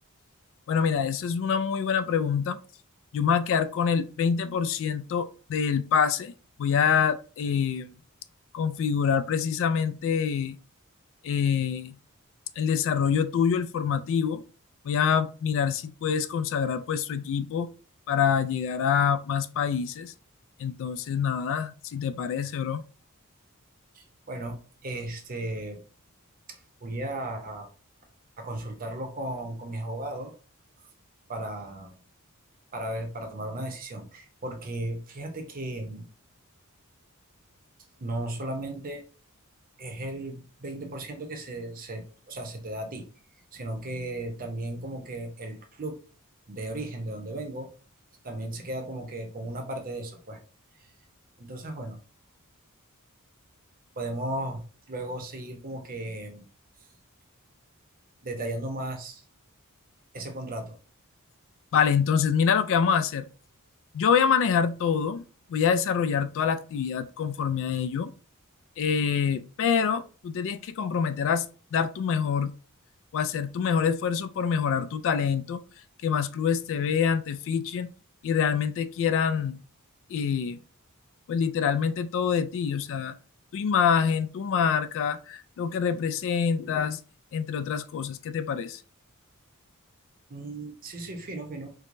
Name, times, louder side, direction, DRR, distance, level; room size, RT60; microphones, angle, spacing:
voice 1, 0.7-2.6 3.1-6.3 6.6-7.9 8.5-10.6 11.2-12.0 12.6-14.4 14.8-17.7 18.1-20.1 20.6-22.8 61.7-63.3 63.9-68.1 68.8-72.5 73.1-75.6 76.0-77.9 78.2-79.6 80.1-80.6 81.3-83.1 83.5-87.0 87.3-88.8, left 7 dB, 60° left, 0.3 m, -26 dB
voice 2, 23.9-25.8 26.5-27.7 28.4-30.3 31.3-32.0 32.7-36.1 38.0-39.0 39.8-43.0 43.5-46.0 46.5-47.7 48.2-50.4 50.8-50.9 51.4-52.0 54.0-54.6 54.9-56.5 58.2-59.2 60.1-60.8 90.3-91.7, right 1 dB, 40° right, 0.8 m, -35 dB
4.6 x 2.1 x 2.6 m
head